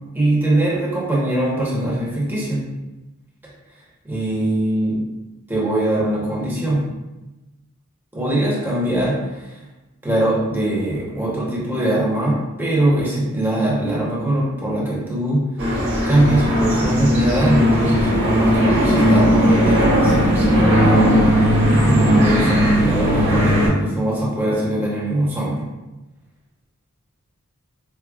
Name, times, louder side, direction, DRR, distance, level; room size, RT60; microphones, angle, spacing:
voice 1, 0.1-2.7 4.0-5.0 5.5-6.8 8.1-9.6 10.0-15.4 16.1-21.0 21.7-25.6, right 1 dB, 10° right, -6 dB, 0.9 m, -21 dB
sound 1, 15.6-23.7, equal, 55° right, 1.2 m, -16 dB
4.7 x 2.2 x 2.3 m, 1.0 s
head